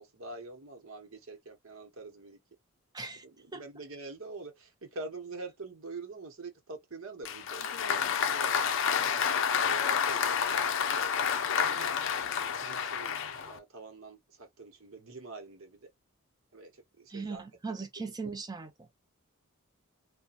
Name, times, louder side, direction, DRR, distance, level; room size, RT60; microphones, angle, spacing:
voice 1, 0.0-2.4 3.5-7.6 7.9-8.5 9.3-10.2 11.4-11.9 12.6-13.2 13.5-15.8 16.5-16.7 17.0-17.4, right 3 dB, 65° right, 0.9 m, -45 dB
voice 2, 2.9-3.2 3.5-3.6 11.7-11.9 17.1-18.9, right 4 dB, 20° right, 0.5 m, -39 dB
Applause, 7.2-13.6, left 7 dB, 55° left, 0.4 m, -29 dB
2.7 x 2.2 x 2.3 m
head